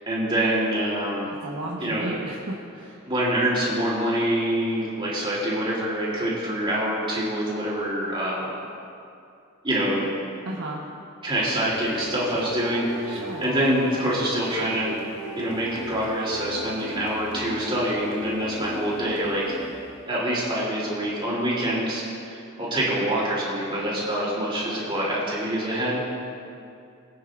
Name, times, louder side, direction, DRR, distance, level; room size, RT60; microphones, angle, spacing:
voice 1, 0.1-1.3 1.8-2.1 3.0-8.5 9.6-10.1 11.2-15.0 15.4-19.6 20.1-26.2, right 1 dB, 25° right, -7 dB, 3.2 m, -26 dB
voice 2, 1.4-3.0 10.4-10.8 13.1-13.5, right 2 dB, 80° right, -5 dB, 1.3 m, -34 dB
sound 1, 11.3-20.2, equal, 65° left, 1.7 m, -37 dB
22.5 x 9.2 x 2.6 m, 2.5 s
head